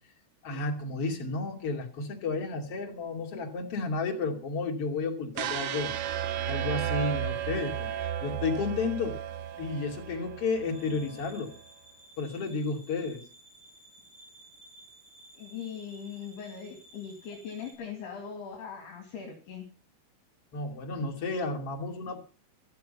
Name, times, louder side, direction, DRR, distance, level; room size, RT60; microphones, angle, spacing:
voice 1, 0.4-5.9 6.5-9.2 9.6-11.6 12.2-13.2 20.5-22.2, left 3 dB, 35° left, 2.9 m, -32 dB
sound 1, 5.4-11.4, right 10 dB, 90° right, 3.7 m, -34 dB
sound 2, 10.6-17.7, right 1 dB, 20° right, 7.0 m, -55 dB
voice 2, 15.3-19.7, left 7 dB, 60° left, 4.2 m, -40 dB
14.5 x 14.0 x 5.5 m
omnidirectional pair, 5.4 m